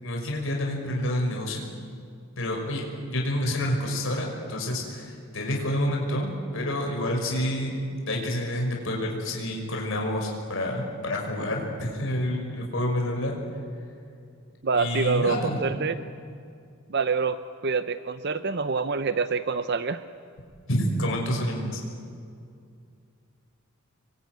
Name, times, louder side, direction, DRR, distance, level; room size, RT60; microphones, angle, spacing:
voice 1, 0.0-1.7 2.4-7.7 8.1-13.3 14.7-15.6 20.7-21.8, left 1 dB, 65° left, 0 dB, 5.7 m, -28 dB
voice 2, 14.6-15.9 16.9-20.0, right 5 dB, 50° right, 11 dB, 0.7 m, -26 dB
27.0 x 23.5 x 9.5 m, 2.3 s
head